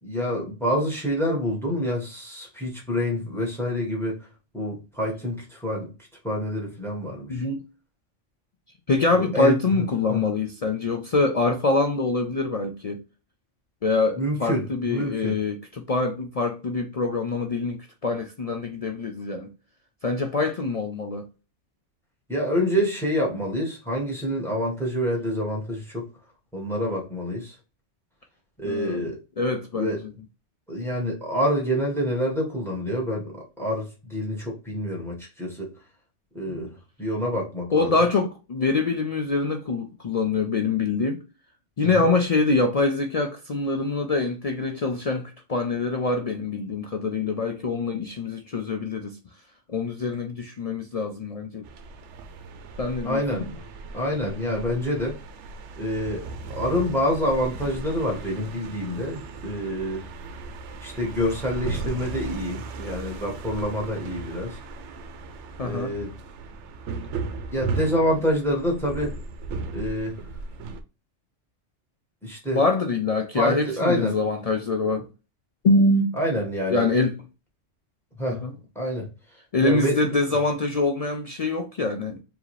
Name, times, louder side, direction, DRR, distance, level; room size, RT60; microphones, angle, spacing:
voice 1, 0.0-4.2 4.5-5.9 6.2-7.4 9.1-10.2 14.1-15.4 22.3-26.1 26.5-27.6 28.6-29.2 29.7-30.0 30.7-35.7 36.3-37.9 41.9-42.1 53.0-53.6 53.9-55.2 55.8-56.2 56.5-60.1 60.8-64.6 65.6-66.1 67.5-69.1 69.7-70.2 72.2-72.6 73.3-74.2 76.2-76.9 78.2-78.4 78.7-79.1 79.6-80.1, equal, ahead, 1.5 m, -27 dB
voice 2, 7.3-7.6 8.9-13.0 13.8-19.5 20.0-21.3 28.6-29.1 29.4-30.0 36.5-36.6 37.7-41.2 41.8-49.2 49.7-51.7 52.8-53.4 65.6-65.9 72.5-75.1 75.6-76.1 76.7-77.1 78.4-78.5 79.5-82.2, left 3 dB, 55° left, 0.4 m, -24 dB
sound 1, 51.6-70.8, right 3 dB, 75° right, 0.9 m, -36 dB
4.8 x 2.8 x 3.1 m
omnidirectional pair, 1.2 m